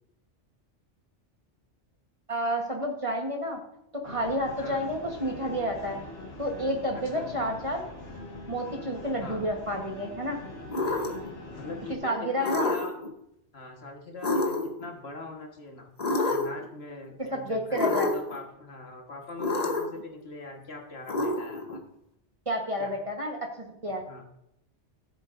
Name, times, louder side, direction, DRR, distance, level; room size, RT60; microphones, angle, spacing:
voice 1, 2.3-3.6 3.9-6.0 6.4-7.8 8.5-10.4 12.0-12.7 17.2-18.1 22.5-24.2, equal, 30° right, 1 dB, 1.3 m, -30 dB
sound 1, 4.0-12.0, left 2 dB, 85° left, 1.9 m, -42 dB
sound 2, 10.7-11.3 12.4-13.1 14.2-14.9 16.0-16.7 17.7-18.4 19.4-20.0 21.1-21.8, left 2 dB, 35° left, 1.1 m, -28 dB
voice 2, 11.6-13.0 13.5-15.9 16.3-21.8 22.8-22.9 24.1-24.2, left 2 dB, 60° left, 2 dB, 1.7 m, -41 dB
13.5 x 7.9 x 2.6 m, 0.77 s
omnidirectional pair, 1.2 m